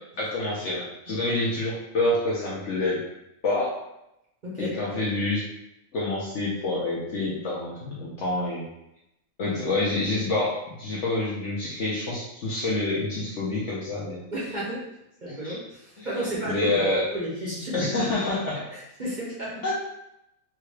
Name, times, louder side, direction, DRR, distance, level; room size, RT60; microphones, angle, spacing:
voice 1, 0.2-3.0 3.4-3.7 4.6-5.4 5.9-8.7 9.4-14.2 15.3-15.6 16.0-16.1 16.5-17.1 17.7-18.7 19.6-19.7, left 2 dB, 60° left, -6 dB, 0.9 m, -27 dB
voice 2, 4.4-4.7 14.3-14.8 15.2-16.8 17.1-18.3 18.7-19.7, right 1 dB, 40° right, -6 dB, 0.8 m, -32 dB
3.7 x 2.3 x 3.2 m, 0.84 s
omnidirectional pair, 1.6 m